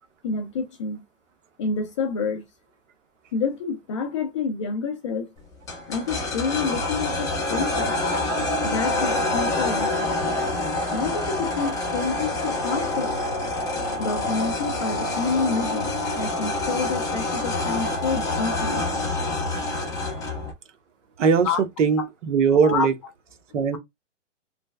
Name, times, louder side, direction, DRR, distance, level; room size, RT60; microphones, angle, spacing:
voice 1, 0.2-1.0 1.6-2.4 3.3-5.3 5.9-8.0 8.6-10.2 10.9-13.2 14.0-18.8 21.4-21.6 22.6-22.9, left 5 dB, 25° left, 0.4 m, -28 dB
sound 1, 5.7-20.5, left 2 dB, 10° left, 0.8 m, -26 dB
voice 2, 21.2-22.9 23.5-23.8, right 6 dB, 75° right, 0.9 m, -20 dB
3.1 x 2.2 x 3.1 m
hypercardioid pair, 150°, 37 cm